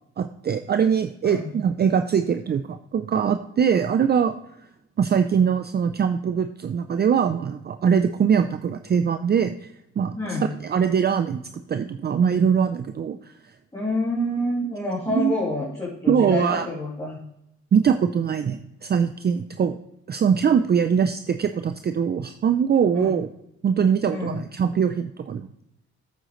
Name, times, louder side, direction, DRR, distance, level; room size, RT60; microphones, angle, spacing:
voice 1, 0.2-4.4 5.0-9.5 10.0-10.2 10.6-11.4 11.7-13.2 15.1-15.4 16.1-16.7 17.7-19.8 20.1-23.3 23.6-25.5, right 7 dB, 35° right, 9 dB, 0.5 m, -22 dB
voice 2, 10.2-10.5 13.7-17.2 22.9-23.1 24.1-24.4, left 1 dB, 15° left, -9 dB, 3.0 m, -28 dB
9.0 x 7.9 x 3.1 m, 0.81 s
cardioid pair, 90°, 30 cm